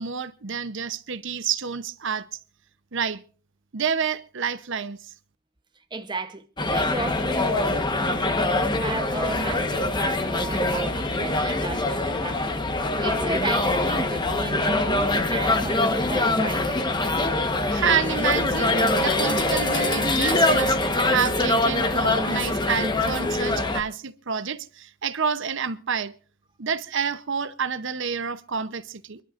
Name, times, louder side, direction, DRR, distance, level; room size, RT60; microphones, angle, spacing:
voice 1, 0.0-2.3 2.9-3.2 3.7-5.0 17.7-26.1 26.6-29.2, right 6 dB, 55° right, 0.8 m, -28 dB
voice 2, 5.9-16.7, right 2 dB, 20° right, 0.8 m, -34 dB
sound 1, 6.6-23.8, left 2 dB, 20° left, 1.1 m, -24 dB
28.0 x 11.5 x 2.5 m
head